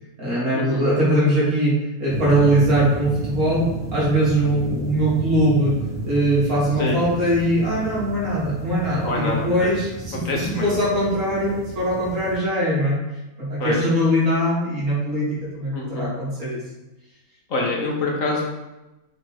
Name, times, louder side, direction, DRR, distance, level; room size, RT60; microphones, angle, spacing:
voice 1, 0.2-5.8 6.0-13.0 13.4-16.6, right 1 dB, 70° right, -8 dB, 3.0 m, -21 dB
sound 1, 2.1-12.4, right 2 dB, ahead, 1.1 m, -32 dB
voice 2, 9.0-9.7 10.1-10.7 13.6-13.9 15.7-16.1 17.5-18.4, left 2 dB, 60° left, -1 dB, 1.6 m, -26 dB
6.3 x 3.7 x 4.8 m, 1.0 s
omnidirectional pair, 1.6 m